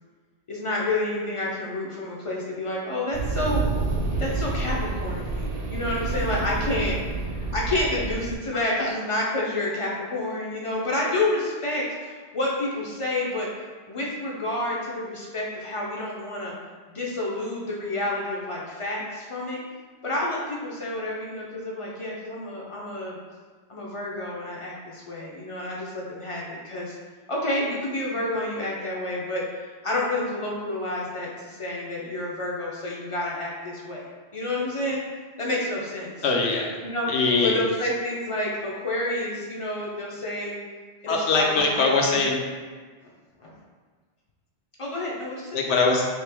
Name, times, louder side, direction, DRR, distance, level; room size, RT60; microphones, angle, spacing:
voice 1, 0.5-3.7 4.2-7.0 7.5-13.5 13.9-16.5 16.9-19.6 20.0-23.2 23.7-26.9 27.3-29.4 29.8-34.1 34.3-35.0 35.4-36.1 36.8-37.1 37.4-40.6 41.0-42.2 43.4-43.5 44.8-45.6, left 1 dB, 45° left, -4 dB, 0.4 m, -29 dB
sound 1, 3.1-8.3, right 3 dB, 65° right, 0.9 m, -28 dB
voice 2, 36.2-36.8 37.1-37.6 41.1-42.4 45.5-46.1, left 3 dB, 85° left, 0 dB, 0.9 m, -22 dB
3.1 x 2.8 x 3.3 m, 1.5 s
omnidirectional pair, 1.1 m